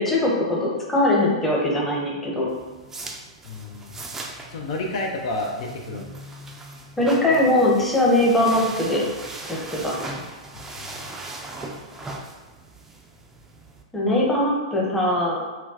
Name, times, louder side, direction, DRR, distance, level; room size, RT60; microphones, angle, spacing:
voice 1, 0.0-2.5 7.0-9.0 9.5-9.9 13.9-15.4, left 1 dB, 5° left, -4 dB, 0.9 m, -21 dB
sound 1, 2.5-13.8, right 2 dB, 10° right, 0.4 m, -39 dB
voice 2, 3.4-4.0 4.5-6.1 10.7-11.1, left 2 dB, 60° left, 0 dB, 0.6 m, -30 dB
4.3 x 2.3 x 2.9 m, 1.3 s
hypercardioid pair, 115°, 3 cm